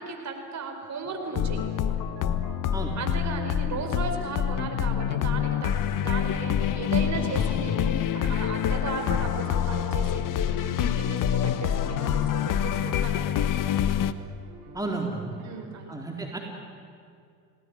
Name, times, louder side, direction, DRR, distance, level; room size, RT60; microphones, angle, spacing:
voice 1, 0.0-1.6 2.9-10.3 10.6-13.9 15.4-16.0, right 4 dB, 35° right, 4 dB, 4.8 m, -36 dB
sound 1, 1.0-4.4 5.1-11.3 11.6-15.7, right 4 dB, 50° right, 5.8 m, -48 dB
sound 2, 1.3-14.1, left 9 dB, 40° left, 1.3 m, -26 dB
voice 2, 14.7-15.4 15.9-16.4, right 3 dB, 5° right, 0 dB, 4.0 m, -32 dB
30.0 x 18.5 x 9.7 m, 2.3 s
hypercardioid pair, 75°, 49 cm